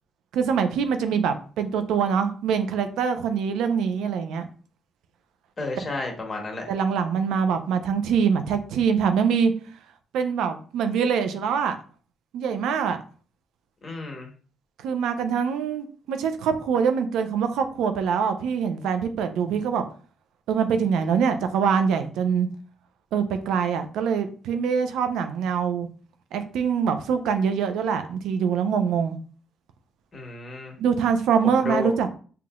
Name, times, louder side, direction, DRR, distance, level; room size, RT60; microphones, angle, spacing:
voice 1, 0.3-4.5 5.8-5.9 6.7-9.5 10.1-11.8 12.3-13.0 14.8-19.8 20.5-22.5 23.1-25.9 26.3-29.2 30.8-32.1, right 6 dB, 85° right, 8 dB, 0.5 m, -24 dB
voice 2, 5.6-6.7 13.8-14.3 30.1-30.7 31.6-31.9, left 3 dB, 35° left, 1 dB, 1.3 m, -31 dB
5.7 x 2.8 x 2.5 m, 0.41 s
cardioid pair, 90°, 0 cm